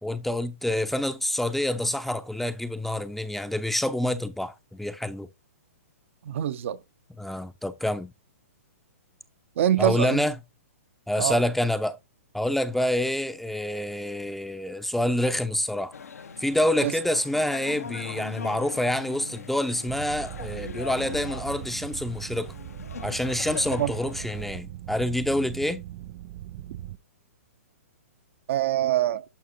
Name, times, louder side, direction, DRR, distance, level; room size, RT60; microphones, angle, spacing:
voice 1, 0.0-5.3 7.2-8.1 9.8-10.4 11.1-12.0 12.3-15.9 16.4-22.5 23.0-25.8, left 1 dB, ahead, 0.7 m, -27 dB
voice 2, 6.2-6.8 9.6-10.2 11.2-11.4 16.8-16.9 23.8-23.9 28.5-29.2, right 12 dB, 60° right, 0.9 m, -24 dB
sound 1, 15.9-24.5, left 5 dB, 80° left, 1.4 m, -40 dB
sound 2, 19.9-27.0, right 13 dB, 40° right, 0.5 m, -39 dB
11.5 x 5.6 x 2.7 m
hypercardioid pair, 125°, 8 cm